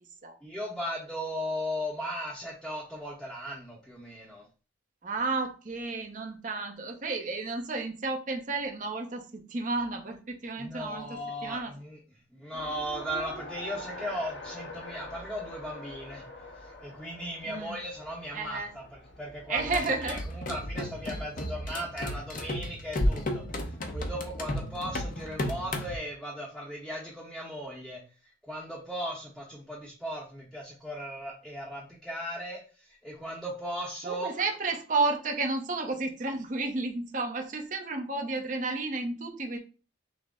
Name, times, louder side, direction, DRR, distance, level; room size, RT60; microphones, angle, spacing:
voice 1, 0.4-4.5 10.6-12.0 12.3-16.2 16.5-20.2 20.5-23.7 23.9-34.3, equal, ahead, -7 dB, 0.8 m, -37 dB
voice 2, 5.0-11.7 17.4-17.8 18.3-18.7 19.5-20.1 34.0-39.6, right 3 dB, 40° right, 3 dB, 0.6 m, -32 dB
Race car auto racing, 12.5-21.6, left 2 dB, 70° left, 1.0 m, -45 dB
sound 1, 19.6-26.0, left 1 dB, 40° left, 0.7 m, -33 dB
6.0 x 2.1 x 3.5 m, 0.35 s
head